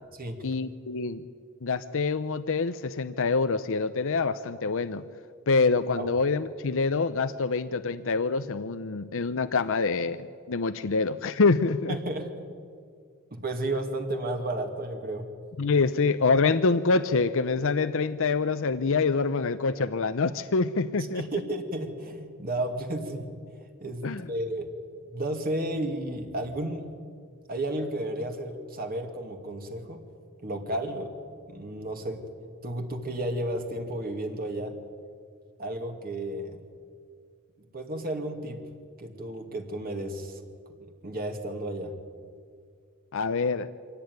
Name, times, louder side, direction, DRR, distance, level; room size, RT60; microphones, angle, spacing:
voice 1, 0.4-1.2 1.6-5.0 5.5-12.0 15.6-21.2 24.0-24.3 43.1-43.7, left 4 dB, 65° left, 11 dB, 0.7 m, -26 dB
voice 2, 11.9-12.3 13.3-15.3 21.1-23.3 23.8-24.7 25.1-26.8 27.5-30.0 30.4-31.1 31.5-32.2 32.6-34.7 35.6-36.6 37.7-38.6 39.0-40.4 41.0-41.9, right 1 dB, 45° right, 4 dB, 2.4 m, -32 dB
25.0 x 17.0 x 9.5 m, 2.2 s
head